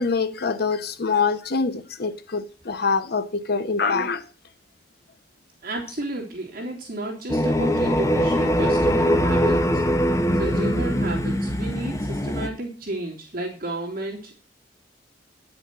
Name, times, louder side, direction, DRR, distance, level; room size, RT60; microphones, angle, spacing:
voice 1, 0.0-4.2, left 4 dB, 60° left, 1.0 m, -24 dB
voice 2, 5.6-9.8 10.4-14.3, right 2 dB, 55° right, 3.3 m, -32 dB
sound 1, 7.3-12.5, equal, 15° left, 0.9 m, -22 dB
9.9 x 6.4 x 7.4 m
head